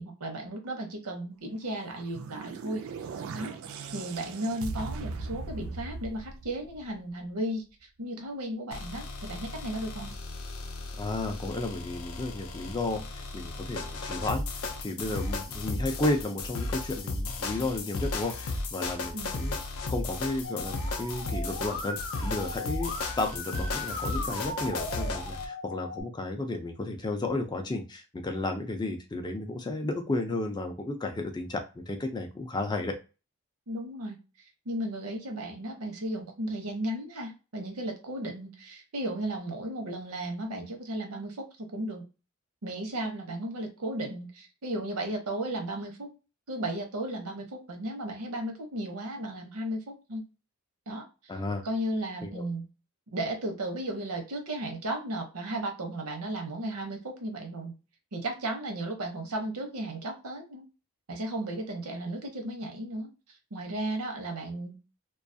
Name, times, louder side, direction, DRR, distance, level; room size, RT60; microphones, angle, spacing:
voice 1, 0.0-3.1 3.3-3.6 3.9-10.1 19.1-19.4 33.7-34.2 34.7-42.0 42.6-46.1 46.5-50.2 50.9-51.3 51.6-52.7 53.1-57.7 58.1-60.6 61.1-63.1 63.5-64.8, right 1 dB, 85° right, 3 dB, 0.7 m, -35 dB
sound 1, 1.8-7.1, right 4 dB, 65° right, 0.3 m, -39 dB
sound 2, 8.7-25.5, left 3 dB, 75° left, 0.5 m, -35 dB
voice 2, 11.0-19.6 19.9-33.0 51.3-51.6 52.2-52.4, left 2 dB, 20° left, 5 dB, 0.3 m, -33 dB
Musical instrument, 20.4-26.0, left 1 dB, 35° left, 0.7 m, -38 dB
2.3 x 2.3 x 2.6 m, 0.31 s
head